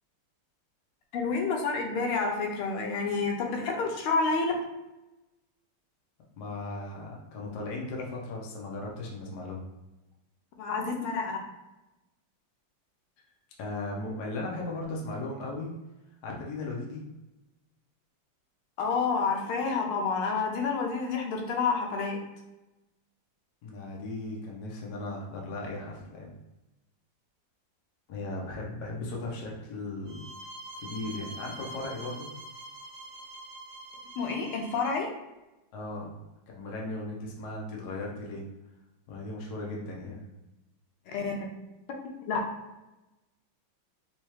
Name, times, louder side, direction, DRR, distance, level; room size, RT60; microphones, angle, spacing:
voice 1, 1.1-4.5 10.6-11.4 18.8-22.2 34.2-35.1 41.1-41.5 42.3-42.4, left 4 dB, 80° left, 1 dB, 1.5 m, -29 dB
voice 2, 6.4-9.6 13.2-13.3 13.6-15.7 16.2-17.0 23.6-26.3 28.1-30.2 30.8-32.3 35.7-38.5 39.1-40.2, left 2 dB, 65° left, -2 dB, 1.1 m, -37 dB
sound 1, 30.1-35.0, right 2 dB, 90° right, 1.6 m, -44 dB
4.4 x 2.3 x 3.0 m, 0.99 s
omnidirectional pair, 2.4 m